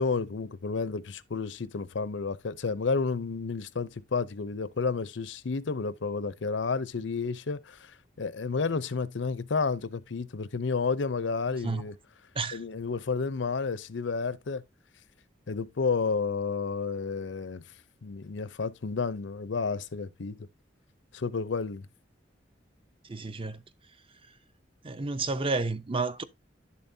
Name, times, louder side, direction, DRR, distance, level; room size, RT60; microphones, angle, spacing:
voice 1, 0.0-11.9 12.5-14.6 15.5-17.6 18.0-20.4 21.1-21.9, left 4 dB, 85° left, 0.6 m, -31 dB
voice 2, 23.0-23.6 24.8-26.2, right 3 dB, 30° right, 0.6 m, -31 dB
11.0 x 7.0 x 2.7 m
head